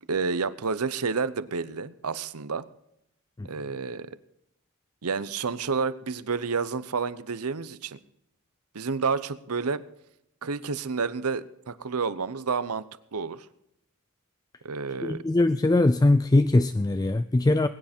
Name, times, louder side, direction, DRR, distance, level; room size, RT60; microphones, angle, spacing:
voice 1, 0.1-2.6 3.5-4.2 5.0-8.0 8.7-9.8 10.4-12.8 13.1-13.5 14.6-15.2, right 5 dB, 75° right, 0.8 m, -30 dB
voice 2, 15.0-17.7, left 2 dB, 15° left, 0.4 m, -21 dB
21.5 x 9.8 x 4.4 m
head